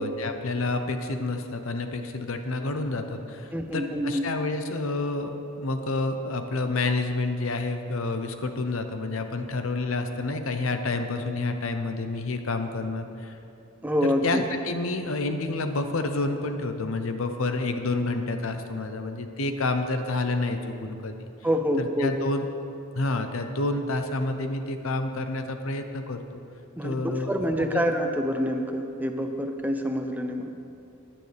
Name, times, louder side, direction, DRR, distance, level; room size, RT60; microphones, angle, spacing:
voice 1, 0.0-13.4 14.0-21.3 21.8-22.5 22.9-26.4 26.8-27.8, left 2 dB, 65° left, 7 dB, 0.8 m, -29 dB
voice 2, 3.5-4.3 13.8-14.4 21.4-22.2 26.8-30.5, equal, 10° right, 5 dB, 0.5 m, -27 dB
16.0 x 10.5 x 3.4 m, 2.7 s
head